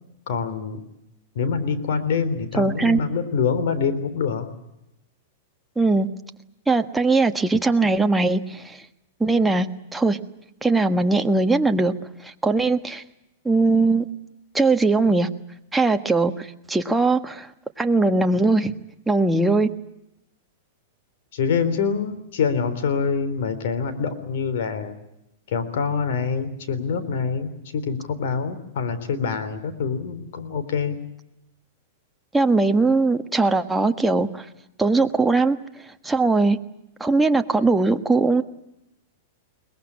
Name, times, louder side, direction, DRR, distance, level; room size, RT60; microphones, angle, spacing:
voice 1, 0.3-0.8 1.4-4.5 21.3-24.9 25.5-31.0, left 6 dB, 70° left, 10 dB, 3.6 m, -25 dB
voice 2, 2.6-3.0 5.8-6.1 6.7-8.8 9.2-9.7 9.9-10.2 10.6-11.9 12.2-13.0 13.4-14.0 14.5-15.3 15.7-17.5 17.8-18.7 19.1-19.7 32.3-34.5 34.8-35.6 36.0-36.6 37.0-38.4, right 3 dB, 5° right, 6 dB, 1.4 m, -20 dB
22.0 x 20.0 x 9.8 m, 0.86 s
hypercardioid pair, 125°, 0 cm